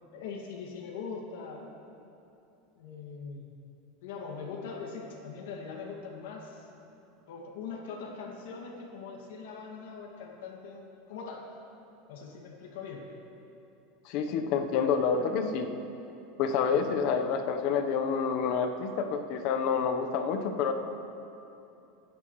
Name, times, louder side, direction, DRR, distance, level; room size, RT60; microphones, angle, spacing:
voice 1, 0.0-1.6 2.7-3.5 4.0-6.7 7.3-11.5 12.1-13.1 16.7-16.9, left 5 dB, 75° left, -1 dB, 2.1 m, -41 dB
voice 2, 14.0-15.7 16.4-20.7, left 6 dB, 50° left, 6 dB, 1.0 m, -28 dB
25.0 x 9.8 x 3.2 m, 2.8 s
supercardioid pair, 160°, 0 cm